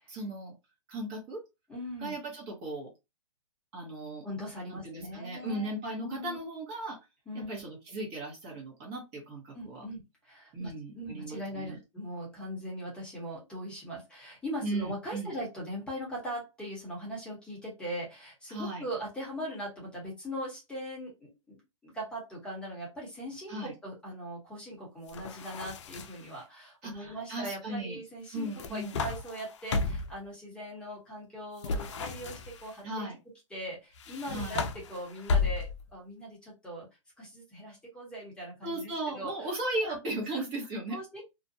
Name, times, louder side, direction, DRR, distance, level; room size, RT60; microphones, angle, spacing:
voice 1, 0.1-0.5 0.9-1.4 2.0-2.9 3.7-4.2 4.7-7.0 7.3-9.8 10.5-11.8 14.6-15.3 18.5-18.9 23.5-23.7 26.8-28.0 28.3-29.0 32.8-33.2 34.3-34.6 38.6-41.2, right 2 dB, 30° right, -1 dB, 0.9 m, -36 dB
voice 2, 1.7-2.1 4.2-5.7 6.0-6.4 7.3-7.6 9.5-21.6 21.8-33.1 33.5-36.9 37.2-39.3 39.8-40.0 40.9-41.2, equal, 5° left, -4 dB, 0.9 m, -40 dB
sound 1, 25.1-26.3 28.3-30.2 31.6-32.8 33.9-35.9, left 4 dB, 60° left, 0.5 m, -33 dB
2.4 x 2.1 x 2.7 m, 0.24 s
hypercardioid pair, 150°, 17 cm